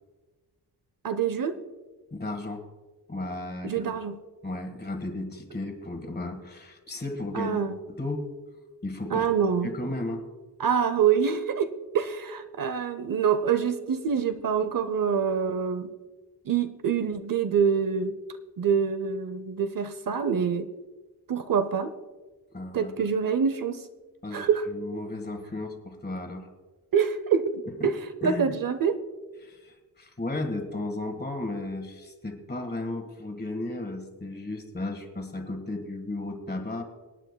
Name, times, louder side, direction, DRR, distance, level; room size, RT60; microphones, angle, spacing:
voice 1, 1.0-1.6 3.6-4.2 7.3-7.8 9.1-9.7 10.6-15.9 16.5-18.2 18.6-20.7 21.3-21.9 22.7-23.9 24.3-24.6 26.9-28.0 28.2-29.0, right 7 dB, 55° right, 11 dB, 0.7 m, -26 dB
voice 2, 2.1-2.6 3.1-3.8 4.4-7.6 7.9-8.3 8.8-9.3 9.6-10.2 22.5-22.9 24.2-26.5 27.8-27.9 28.2-28.5 29.4-36.8, left 2 dB, 25° left, 5 dB, 1.5 m, -34 dB
26.0 x 9.1 x 2.2 m, 1.2 s
wide cardioid pair, 125°, 40 cm